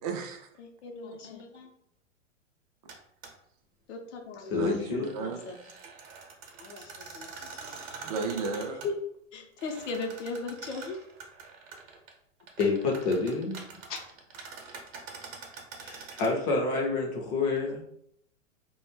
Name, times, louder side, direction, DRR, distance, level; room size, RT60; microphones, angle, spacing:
voice 1, 0.0-0.5 4.5-5.4 8.0-8.8, right 3 dB, 35° right, 3 dB, 0.4 m, -33 dB
voice 2, 0.6-1.7 3.9-4.8 5.2-5.6 6.6-7.8 8.5-8.9 9.3-11.0 13.9-14.0, left 3 dB, 65° left, 4 dB, 0.6 m, -38 dB
sound 1, 2.9-3.0 3.2-3.3 4.8-8.9 9.6-12.1 12.4-16.3, right 5 dB, 50° right, 0.7 m, -45 dB
voice 3, 4.5-5.1 7.0-7.8 12.6-13.6 15.8-17.8, left 3 dB, 25° left, -1 dB, 0.5 m, -29 dB
2.2 x 2.0 x 3.1 m, 0.73 s
figure-of-eight pair, 110°, 39 cm